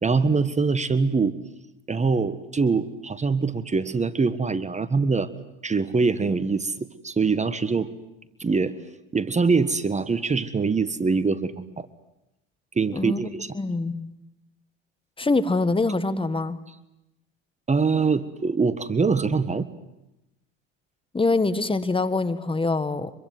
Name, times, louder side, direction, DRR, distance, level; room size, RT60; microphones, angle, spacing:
voice 1, 0.0-1.4 1.9-5.3 5.6-7.9 8.4-8.8 9.1-11.9 12.7-13.5 17.7-19.7, right 4 dB, 20° right, 14 dB, 1.5 m, -23 dB
voice 2, 13.5-14.1 15.2-16.6 21.1-23.1, left 3 dB, 15° left, 12 dB, 1.7 m, -24 dB
25.0 x 23.5 x 9.5 m, 0.90 s
hypercardioid pair, 75°, 33 cm